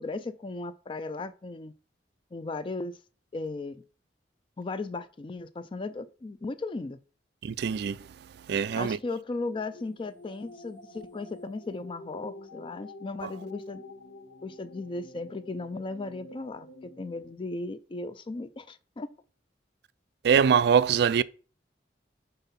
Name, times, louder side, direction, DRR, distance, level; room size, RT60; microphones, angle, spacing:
voice 1, 0.0-1.7 2.3-3.0 3.3-3.8 4.6-7.0 8.7-13.8 14.4-19.1, left 3 dB, 30° left, 0.4 m, -36 dB
voice 2, 7.4-8.0 8.5-9.0 13.2-13.3 20.2-21.2, right 7 dB, 65° right, 0.3 m, -23 dB
sound 1, 9.2-17.3, left 2 dB, 80° left, 1.1 m, -48 dB
5.4 x 4.5 x 5.7 m
head